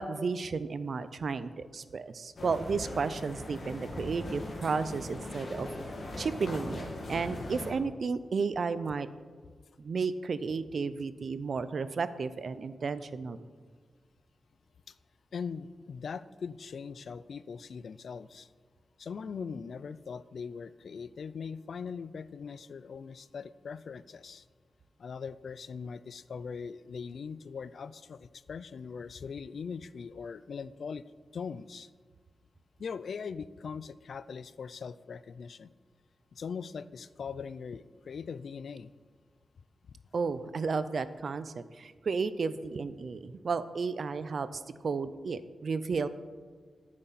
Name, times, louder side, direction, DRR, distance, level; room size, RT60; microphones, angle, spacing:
voice 1, 0.0-5.7 6.2-9.1 9.8-13.4 40.1-46.1, right 4 dB, 50° right, 14 dB, 0.5 m, -33 dB
sound 1, 2.4-7.7, left 1 dB, 45° left, 1.7 m, -40 dB
voice 2, 15.3-18.5 19.0-24.4 25.0-31.0 31.3-31.9 32.8-35.7 36.3-38.9 39.9-40.0, left 6 dB, 65° left, 16 dB, 0.3 m, -41 dB
13.5 x 7.5 x 4.1 m, 1.5 s
wide cardioid pair, 165°, 0 cm